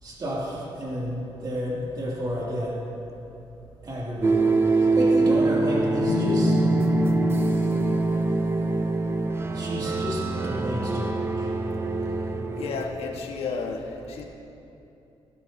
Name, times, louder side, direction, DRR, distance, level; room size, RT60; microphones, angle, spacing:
voice 1, 0.0-2.8 3.8-6.6 9.5-11.5, equal, 40° right, -6 dB, 2.7 m, -31 dB
sound 1, 4.2-12.8, right 3 dB, 25° right, 0.7 m, -25 dB
sound 2, 6.1-9.9, right 1 dB, 65° left, 1.3 m, -25 dB
voice 2, 12.5-14.2, left 4 dB, 80° left, 1 dB, 1.5 m, -32 dB
19.0 x 11.5 x 2.8 m, 2.9 s
cardioid pair, 130°, 10 cm